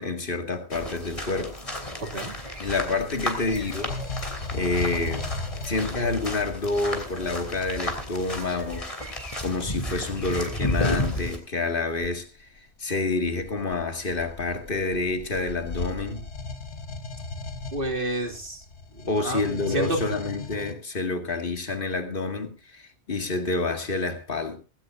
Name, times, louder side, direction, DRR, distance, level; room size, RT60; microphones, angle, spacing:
voice 1, 0.0-1.6 2.6-3.9 4.5-5.3 5.7-12.5 12.8-16.2 19.1-24.6, left 3 dB, 50° left, 2.2 m, -28 dB
sound 1, 0.7-11.4, left 1 dB, 30° left, 3.2 m, -32 dB
voice 2, 2.0-2.3 17.7-18.6 18.9-20.0, right 1 dB, 50° right, 2.7 m, -30 dB
sound 2, 2.5-6.6 11.9-12.2 12.9-20.7, left 3 dB, 70° left, 1.5 m, -37 dB
18.0 x 16.5 x 2.6 m
omnidirectional pair, 1.2 m